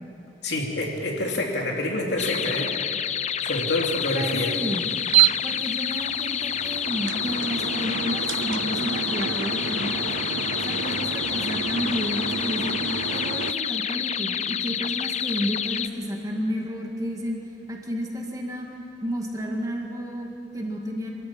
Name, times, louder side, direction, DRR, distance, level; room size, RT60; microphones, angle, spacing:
voice 1, 0.4-2.7 3.4-4.6, left 1 dB, 65° left, 0 dB, 2.9 m, -27 dB
sound 1, 2.2-15.9, left 8 dB, 35° left, 0.5 m, -28 dB
voice 2, 4.1-4.9 5.4-10.1 10.6-12.8 13.1-17.4 17.7-18.7 19.0-21.1, equal, 20° right, 0 dB, 2.1 m, -31 dB
sound 2, 4.5-13.5, right 11 dB, 85° right, 0.4 m, -29 dB
25.0 x 13.5 x 8.8 m, 2.9 s
head